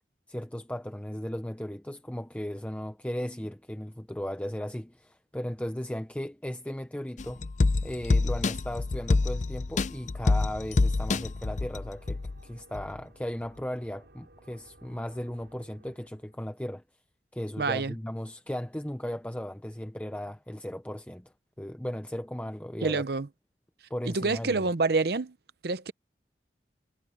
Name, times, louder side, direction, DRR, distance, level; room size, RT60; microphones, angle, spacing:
voice 1, 0.3-7.5 7.8-16.8 17.3-23.0 23.9-24.7, equal, 5° left, 0.7 m, -36 dB
sound 1, 7.2-12.4 12.7-12.8, left 3 dB, 40° left, 0.5 m, -27 dB
sound 2, 8.2-16.7, right 1 dB, 75° right, 4.0 m, -59 dB
voice 2, 17.6-17.9 22.8-23.3 24.0-25.4 25.6-25.9, right 3 dB, 60° right, 0.7 m, -27 dB
head